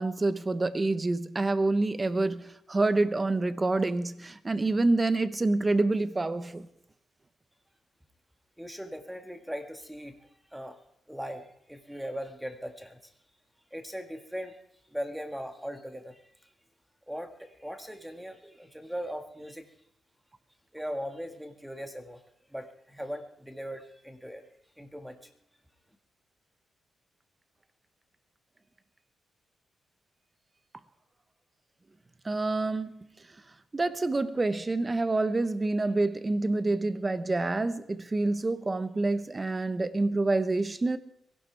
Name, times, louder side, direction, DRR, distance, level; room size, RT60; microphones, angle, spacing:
voice 1, 0.0-6.7 32.2-33.1 33.7-41.0, right 2 dB, 25° right, 1.0 m, -27 dB
voice 2, 8.6-10.2 10.5-10.8 11.1-13.0 13.7-14.6 14.9-16.2 17.1-19.7 20.7-22.2 22.5-24.4 24.8-25.3, equal, 5° right, 1.8 m, -39 dB
23.0 x 17.0 x 3.5 m
cardioid pair, 85°, 0 cm